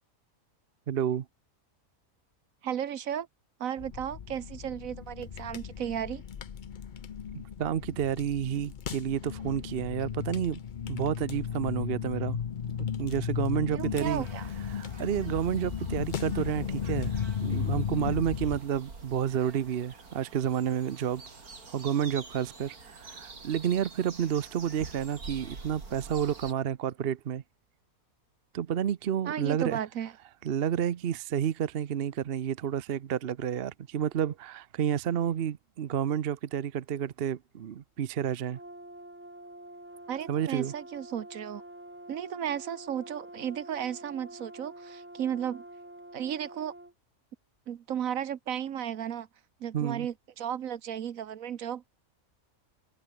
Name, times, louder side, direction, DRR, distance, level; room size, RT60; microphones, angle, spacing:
voice 1, 0.9-1.2 7.6-10.6 10.9-12.4 12.8-14.2 14.7-17.1 17.4-21.2 21.7-27.4 28.5-29.8 30.4-38.6 40.3-40.7 49.7-50.1, right 9 dB, 50° right, 0.8 m, -30 dB
voice 2, 2.6-3.3 3.6-6.2 13.7-14.4 29.3-30.1 40.1-41.6 42.1-45.6 46.1-46.7 47.7-49.3 49.6-51.9, right 9 dB, 70° right, 1.3 m, -34 dB
sound 1, 3.8-18.6, left 8 dB, 45° left, 0.7 m, -35 dB
sound 2, 13.9-26.5, right 4 dB, 90° right, 3.8 m, -47 dB
Brass instrument, 38.5-46.9, right 1 dB, 10° right, 1.1 m, -47 dB
omnidirectional pair, 1.5 m